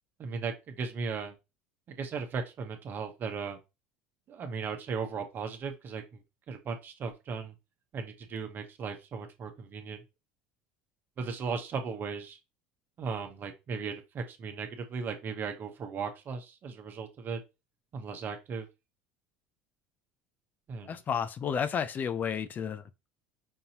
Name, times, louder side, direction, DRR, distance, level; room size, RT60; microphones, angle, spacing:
voice 1, 0.2-1.3 1.9-3.6 4.3-6.2 6.5-7.5 7.9-10.0 11.2-12.4 13.0-17.4 17.9-18.7 20.7-21.0, right 5 dB, 45° right, 1.0 m, -37 dB
voice 2, 20.8-22.8, left 7 dB, 35° left, 0.4 m, -31 dB
5.4 x 2.7 x 2.8 m
hypercardioid pair, 85°, 5 cm